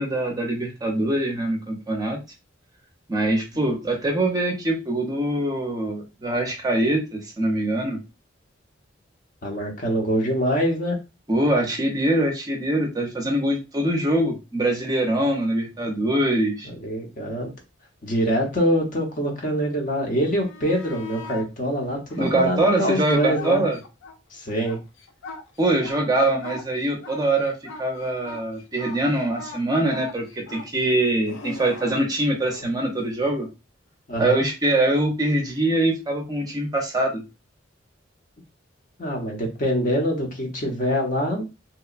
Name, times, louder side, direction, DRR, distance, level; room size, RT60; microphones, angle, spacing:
voice 1, 0.0-2.2 3.1-8.0 11.3-16.7 22.2-23.8 25.6-27.5 27.8-33.5 34.2-37.2, right 1 dB, 20° right, 2 dB, 0.5 m, -23 dB
voice 2, 9.4-11.0 16.8-17.5 18.0-23.7 24.3-24.8 34.1-34.4 39.0-41.4, equal, 40° left, 2 dB, 0.7 m, -24 dB
sound 1, 20.2-21.5 22.1-24.2 24.5-32.7 35.4-35.6, left 2 dB, 85° left, 0.5 m, -40 dB
2.8 x 2.1 x 2.3 m, 0.27 s
head